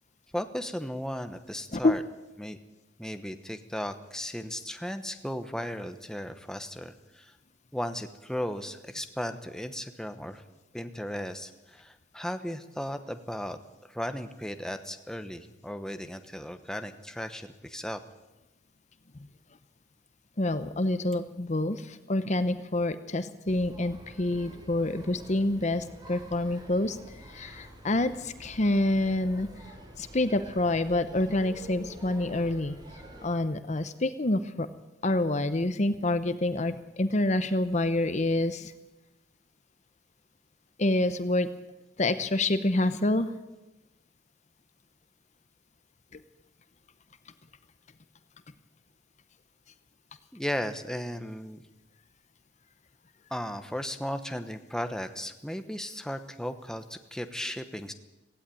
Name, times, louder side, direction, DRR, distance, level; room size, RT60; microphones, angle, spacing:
voice 1, 0.3-2.0 2.4-2.6 3.0-7.3 7.7-10.4 10.7-13.6 13.9-18.0 50.3-51.6 53.3-57.9, equal, 5° left, 8 dB, 1.0 m, -36 dB
voice 2, 20.4-27.0 27.3-29.5 30.0-32.7 33.2-34.7 35.0-38.7 40.8-41.5 42.0-43.3, left 2 dB, 35° left, 12 dB, 0.9 m, -27 dB
sound 1, 23.5-33.3, right 1 dB, 20° right, 3.9 m, -48 dB
17.5 x 16.0 x 9.2 m, 1.0 s
head